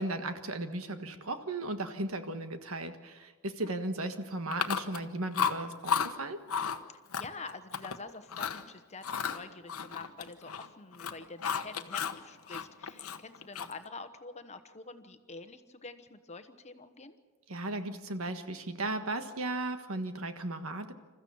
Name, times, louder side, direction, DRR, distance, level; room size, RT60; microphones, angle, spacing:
voice 1, 0.0-6.4 17.5-20.9, right 2 dB, 70° right, 8 dB, 1.5 m, -36 dB
Chewing mastication, 4.5-5.1 5.3-6.1 6.5-6.8 7.1-8.0 8.3-8.6 9.0-10.7 10.9-12.2 12.5-13.9, left 7 dB, 75° left, 1.1 m, -33 dB
voice 2, 6.9-17.2, left 3 dB, 30° left, 9 dB, 1.1 m, -47 dB
27.5 x 14.5 x 7.1 m, 1.4 s
head